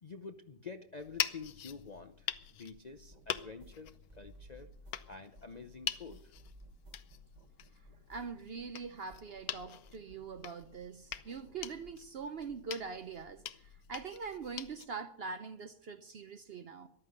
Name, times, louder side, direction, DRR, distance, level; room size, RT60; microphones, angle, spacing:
voice 1, 0.0-4.7 5.1-6.3, left 4 dB, 45° left, 0.5 m, -48 dB
sound 1, 1.0-14.9, left 10 dB, 80° left, 1.2 m, -44 dB
sound 2, 3.1-8.8 9.1-10.8 11.1-12.0, right 1 dB, 30° right, 1.4 m, -59 dB
voice 2, 8.1-16.9, right 5 dB, 55° right, 0.7 m, -43 dB
14.0 x 11.5 x 6.6 m
omnidirectional pair, 1.6 m